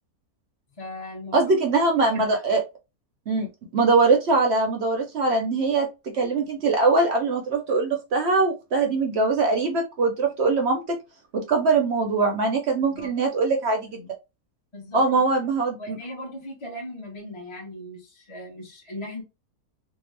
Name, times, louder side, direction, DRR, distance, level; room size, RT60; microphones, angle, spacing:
voice 1, 0.7-1.6 12.8-13.1 14.7-15.0 15.8-19.2, left 1 dB, 25° left, -2 dB, 0.7 m, -38 dB
voice 2, 1.3-2.6 3.3-3.5 3.7-5.9 6.1-11.0 11.3-14.1 14.9-16.0, right 3 dB, 60° right, 3 dB, 0.7 m, -22 dB
2.7 x 2.1 x 3.1 m, 0.26 s
omnidirectional pair, 1.5 m